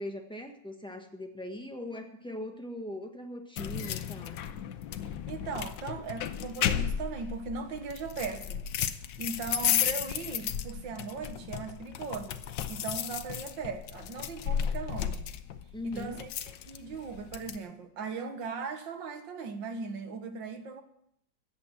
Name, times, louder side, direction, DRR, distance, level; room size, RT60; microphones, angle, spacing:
voice 1, 0.0-4.4 15.7-16.2, left 1 dB, 5° left, 3 dB, 1.3 m, -40 dB
sound 1, 3.6-17.6, left 9 dB, 70° left, 1.4 m, -34 dB
voice 2, 5.0-8.6 9.2-12.4 12.7-15.3 15.8-16.3 16.7-20.8, right 4 dB, 70° right, 7 dB, 2.0 m, -38 dB
14.5 x 8.8 x 7.4 m, 0.74 s
omnidirectional pair, 2.2 m